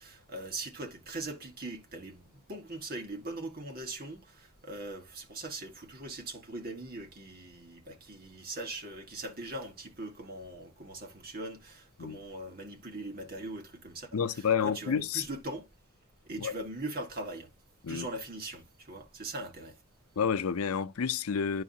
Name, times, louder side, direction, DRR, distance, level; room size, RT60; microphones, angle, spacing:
voice 1, 0.0-15.7 16.3-17.5 17.9-19.7, right 2 dB, 45° right, 1.8 m, -41 dB
voice 2, 14.1-15.2 16.4-16.5 17.8-18.1 20.2-21.6, left 6 dB, 80° left, 0.5 m, -29 dB
11.0 x 4.7 x 2.8 m
head